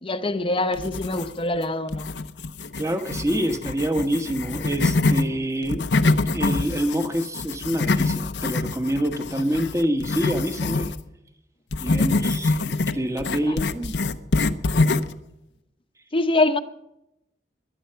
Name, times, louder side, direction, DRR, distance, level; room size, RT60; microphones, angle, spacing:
voice 1, 0.0-2.1 13.4-13.6 16.1-16.6, left 2 dB, 30° left, 0.9 m, -24 dB
sound 1, 0.7-1.6 1.9-5.3 5.6-11.0 11.7-15.2, left 3 dB, 85° left, 0.8 m, -25 dB
voice 2, 2.8-5.9 6.3-10.9 11.8-14.0, equal, 20° right, 1.3 m, -26 dB
20.5 x 11.0 x 5.7 m
head